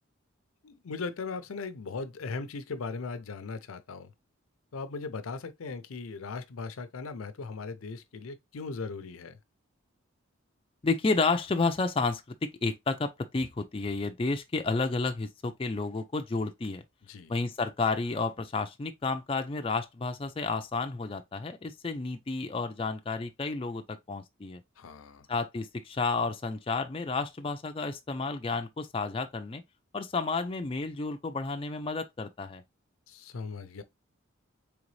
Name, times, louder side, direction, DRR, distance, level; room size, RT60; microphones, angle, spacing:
voice 1, 0.6-4.1 4.7-9.4 17.1-17.3 24.8-25.3 33.1-33.8, left 4 dB, 85° left, 0.6 m, -38 dB
voice 2, 10.8-12.2 12.6-16.8 17.3-24.6 25.3-29.6 29.9-32.6, left 3 dB, 25° left, 0.4 m, -31 dB
3.9 x 3.4 x 3.1 m
head